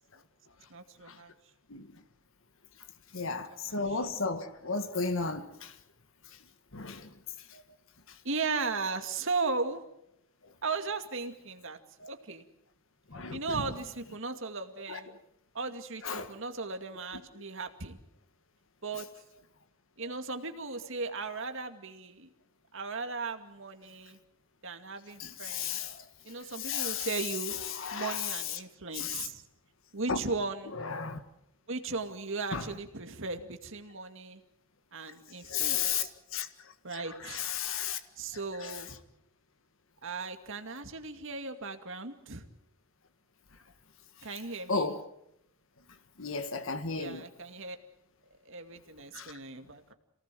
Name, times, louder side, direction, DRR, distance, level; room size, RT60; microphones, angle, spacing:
voice 1, 0.7-1.3 3.3-4.0 8.2-9.8 10.6-11.8 12.1-12.4 13.3-15.2 15.5-18.0 18.8-19.1 20.0-22.3 22.7-24.2 24.6-25.8 26.2-27.5 27.9-29.4 29.9-30.8 31.7-34.4 34.9-36.1 36.8-37.4 38.2-39.0 40.0-42.4 44.2-44.9 46.9-47.8 48.5-49.9, right 4 dB, 65° right, 2.3 m, -37 dB
voice 2, 3.1-5.7 6.7-7.1 7.5-7.6 12.0-12.1 13.1-13.6 14.9-15.0 16.0-16.3 20.0-20.1 25.2-26.1 26.5-27.1 27.7-28.3 28.9-29.3 30.1-30.2 30.7-31.2 32.5-32.6 35.4-36.5 36.9-38.0 38.6-38.8 44.7-45.0 46.2-47.2 49.1-49.3, left 5 dB, 65° left, 1.7 m, -34 dB
27.5 x 18.5 x 7.7 m
head